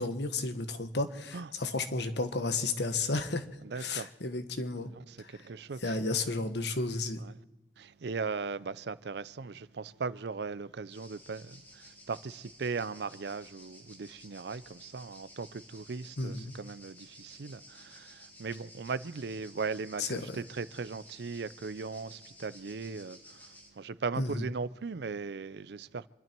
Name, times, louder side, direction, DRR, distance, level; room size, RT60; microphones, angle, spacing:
voice 1, 0.0-3.4 3.7-4.9 5.2-5.3 5.8-7.2 16.2-16.5 20.0-20.2 24.2-24.4, left 3 dB, 70° left, 1.4 m, -32 dB
voice 2, 3.6-4.1 4.9-6.0 7.2-7.4 7.8-26.1, right 4 dB, 65° right, 0.5 m, -38 dB
sound 1, 10.9-23.7, equal, 10° left, 2.4 m, -54 dB
26.0 x 12.0 x 4.5 m
head